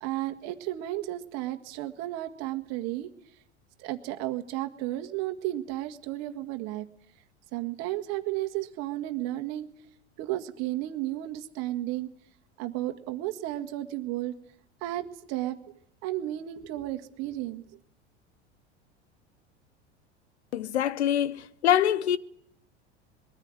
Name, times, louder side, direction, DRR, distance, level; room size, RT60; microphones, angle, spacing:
voice 1, 0.0-3.1 3.8-6.9 7.5-9.7 10.2-12.1 12.6-14.4 14.8-15.6 16.0-17.6, right 15 dB, 50° right, 1.8 m, -33 dB
voice 2, 20.5-22.2, left 10 dB, 70° left, 1.0 m, -24 dB
22.5 x 14.0 x 9.6 m
figure-of-eight pair, 80°, 34 cm